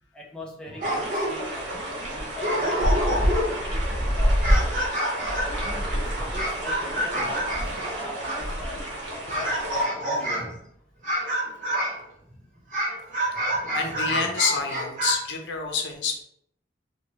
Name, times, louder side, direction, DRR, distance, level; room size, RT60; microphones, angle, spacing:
voice 1, 0.1-1.8 2.1-4.7 5.4-7.5 7.8-9.5 10.0-10.5, left 1 dB, 5° left, -2 dB, 0.4 m, -41 dB
sound 1, 0.7-1.6 2.1-2.2 2.4-3.7 4.2-8.5 9.3-10.6 11.0-12.0 12.7-15.1, equal, 45° right, 0.7 m, -28 dB
sound 2, 0.8-9.8, equal, 80° right, 0.9 m, -28 dB
voice 2, 13.7-16.2, left 5 dB, 85° left, 3 dB, 0.6 m, -28 dB
3.0 x 2.2 x 2.7 m, 0.71 s
head